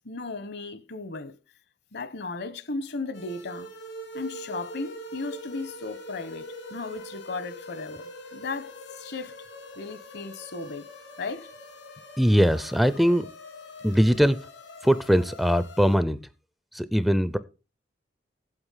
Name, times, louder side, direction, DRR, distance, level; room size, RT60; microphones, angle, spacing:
voice 1, 0.0-1.4 1.9-3.7 4.1-9.4 9.8-10.9 11.2-11.5, left 3 dB, 65° left, 1.0 m, -36 dB
sound 1, 3.1-16.0, equal, 85° left, 2.8 m, -43 dB
voice 2, 12.2-13.3 13.8-14.5 14.8-16.2 16.7-17.4, equal, ahead, 0.4 m, -21 dB
8.0 x 7.9 x 5.6 m
head